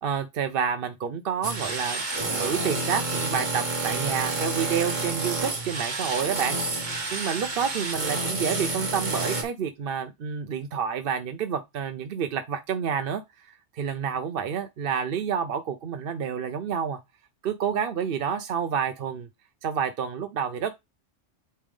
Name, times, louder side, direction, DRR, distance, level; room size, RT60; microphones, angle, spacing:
voice 1, 0.0-2.0 2.3-6.6 7.1-17.0 17.4-19.3 19.6-20.7, right 7 dB, 60° right, 0.7 m, -29 dB
sound 1, 1.4-9.4, right 3 dB, 40° right, 1.4 m, -29 dB
8.4 x 3.3 x 3.5 m
omnidirectional pair, 1.2 m